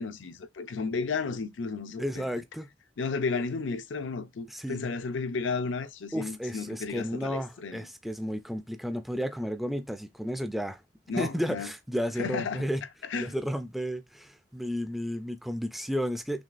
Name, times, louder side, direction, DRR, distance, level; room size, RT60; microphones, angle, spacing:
voice 1, 0.0-2.2 3.0-7.8 11.1-11.7 12.2-12.7 13.1-13.3, left 4 dB, 80° left, 0.5 m, -33 dB
voice 2, 2.0-2.7 4.5-4.9 6.1-10.8 11.2-12.8 13.1-16.4, equal, ahead, 0.3 m, -33 dB
6.1 x 2.3 x 2.5 m
head